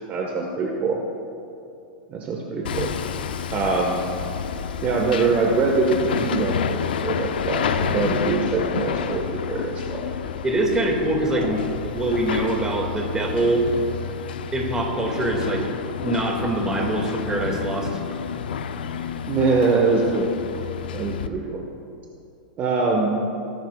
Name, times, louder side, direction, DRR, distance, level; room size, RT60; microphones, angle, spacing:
voice 1, 0.1-1.0 2.1-2.9 3.5-4.0 4.8-10.0 11.4-11.5 19.3-20.3 20.9-21.6 22.6-23.1, right 3 dB, 30° right, 0 dB, 1.5 m, -23 dB
Hammer, 2.6-21.3, left 7 dB, 80° left, 0.7 m, -29 dB
voice 2, 10.4-11.6 11.8-13.6 14.5-15.7 16.0-18.0, right 2 dB, 15° right, 0 dB, 2.2 m, -24 dB
20.0 x 12.0 x 2.4 m, 2.6 s
hypercardioid pair, 120°, 5 cm